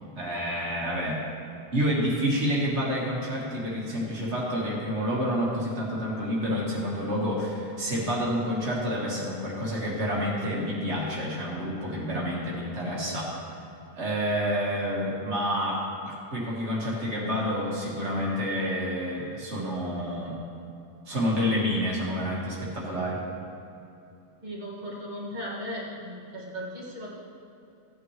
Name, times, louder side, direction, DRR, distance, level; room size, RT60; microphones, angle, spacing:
voice 1, 0.2-1.2 1.7-13.4 14.0-20.4 21.1-23.2, equal, 80° right, -4 dB, 1.9 m, -29 dB
voice 2, 24.4-27.1, equal, 40° right, -6 dB, 2.2 m, -37 dB
16.0 x 9.1 x 3.2 m, 2.8 s
omnidirectional pair, 1.1 m